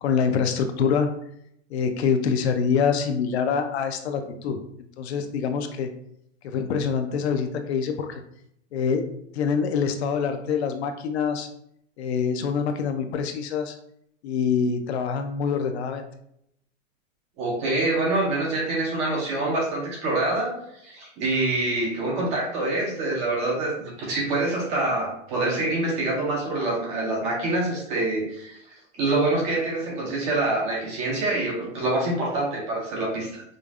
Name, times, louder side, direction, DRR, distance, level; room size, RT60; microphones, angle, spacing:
voice 1, 0.0-1.2 1.7-4.6 5.0-5.9 6.4-8.2 8.7-11.5 12.0-13.8 14.2-16.0, left 6 dB, 55° left, 7 dB, 0.6 m, -25 dB
voice 2, 17.4-20.6 20.8-33.4, right 2 dB, 20° right, -2 dB, 0.4 m, -26 dB
5.1 x 2.3 x 2.4 m, 0.73 s
hypercardioid pair, 145°, 38 cm